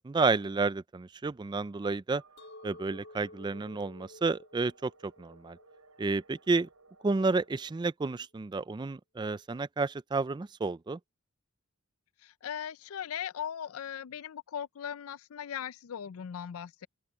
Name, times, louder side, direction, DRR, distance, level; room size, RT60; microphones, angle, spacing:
voice 1, 0.0-2.2 2.6-5.6 6.0-6.7 7.0-11.0, right 3 dB, 20° right, 0.3 m, -31 dB
sound 1, 2.1-7.9, right 4 dB, 85° right, 4.7 m, -62 dB
Chink clink, 2.4-7.5, left 2 dB, 50° left, 7.9 m, -53 dB
voice 2, 12.2-16.9, left 8 dB, 75° left, 0.4 m, -39 dB
open air
head